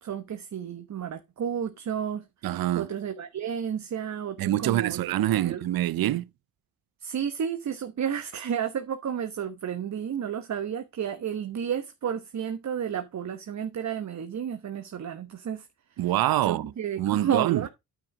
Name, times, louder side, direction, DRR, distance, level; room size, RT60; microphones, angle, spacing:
voice 1, 0.0-2.3 2.7-5.6 7.0-15.7 16.4-17.7, right 8 dB, 45° right, 1.1 m, -32 dB
voice 2, 2.4-2.9 4.4-6.2 16.0-16.7 17.0-17.6, right 14 dB, 60° right, 0.7 m, -25 dB
9.2 x 5.2 x 4.9 m
cardioid pair, 80°, 40 cm